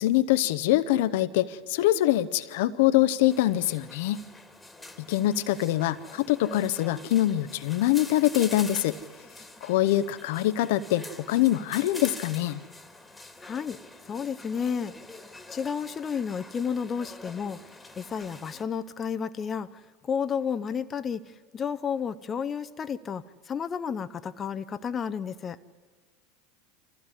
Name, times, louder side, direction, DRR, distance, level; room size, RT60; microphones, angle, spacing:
voice 1, 0.0-4.2 5.0-9.0 9.6-12.6, left 14 dB, 70° left, 12 dB, 0.7 m, -24 dB
sound 1, 3.3-18.6, left 2 dB, 10° left, 2.1 m, -45 dB
voice 2, 13.4-13.8 14.1-14.9 15.5-17.6 18.0-19.7 20.0-25.6, left 7 dB, 30° left, 11 dB, 0.7 m, -31 dB
25.5 x 15.0 x 9.9 m, 1.5 s
hypercardioid pair, 90°, 0 cm